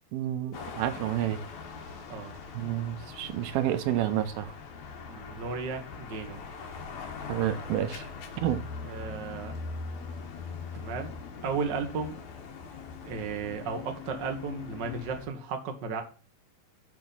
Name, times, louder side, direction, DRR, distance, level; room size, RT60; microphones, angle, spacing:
voice 1, 0.1-1.4 2.5-4.5 7.3-8.1 8.4-8.6, right 12 dB, 80° right, 2.6 m, -29 dB
sound 1, 0.5-15.3, left 5 dB, 60° left, 2.4 m, -41 dB
voice 2, 5.1-6.4 8.8-9.5 10.7-11.1 11.4-12.1 13.0-16.0, right 5 dB, 60° right, 1.1 m, -34 dB
7.8 x 5.1 x 5.5 m
omnidirectional pair, 4.3 m